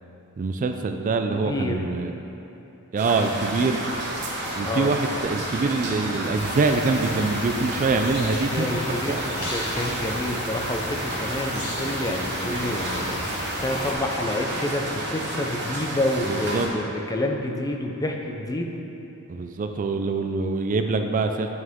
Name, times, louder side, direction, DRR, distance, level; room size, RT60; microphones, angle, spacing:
voice 1, 0.4-2.1 2.9-3.9 4.5-9.5 16.3-16.7 19.3-21.5, right 3 dB, 35° right, 6 dB, 0.3 m, -25 dB
voice 2, 1.3-1.8 4.6-4.9 8.4-9.2 9.5-13.1 13.6-18.8, left 1 dB, 15° left, 2 dB, 0.5 m, -28 dB
sound 1, 3.0-16.7, right 1 dB, 50° right, 1.1 m, -31 dB
sound 2, 6.4-13.9, left 1 dB, 70° left, 1.9 m, -35 dB
9.0 x 6.3 x 3.6 m, 2.9 s
head